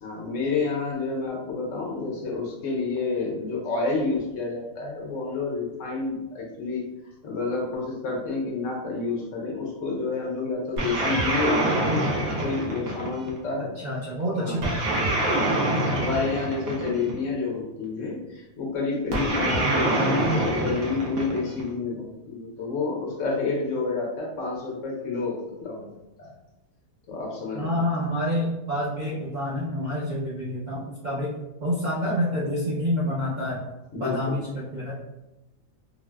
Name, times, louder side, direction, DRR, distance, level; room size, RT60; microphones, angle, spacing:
voice 1, 0.0-6.8 7.2-12.1 12.4-13.7 14.4-14.7 16.0-25.9 26.2-26.3 27.1-28.0 33.9-34.4, left 4 dB, 65° left, -2 dB, 1.0 m, -29 dB
sound 1, 10.8-13.4 14.6-17.2 19.1-21.7, right 1 dB, 80° right, 1.2 m, -25 dB
voice 2, 13.8-14.9 19.6-19.9 27.5-31.3 31.6-33.6 33.9-34.9, equal, 55° right, -8 dB, 0.5 m, -28 dB
3.9 x 2.0 x 2.2 m, 0.95 s
omnidirectional pair, 1.5 m